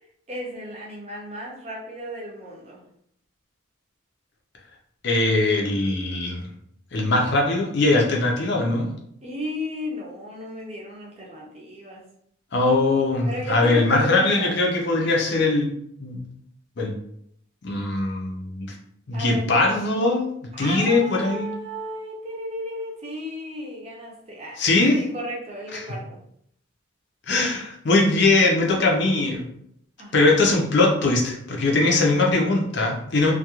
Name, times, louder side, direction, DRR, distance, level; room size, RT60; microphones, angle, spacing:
voice 1, 0.3-2.8 9.2-12.0 13.2-14.5 19.1-19.5 20.5-24.6 25.0-26.2 30.0-30.4, equal, 30° right, -2 dB, 0.6 m, -34 dB
voice 2, 5.0-6.4 6.9-8.9 12.5-15.7 16.0-16.2 16.8-16.9 17.6-18.7 19.1-20.3 20.6-21.5 24.6-25.0 27.3-29.4 30.1-33.3, left 2 dB, 55° left, 0 dB, 0.5 m, -21 dB
2.3 x 2.3 x 2.9 m, 0.71 s
head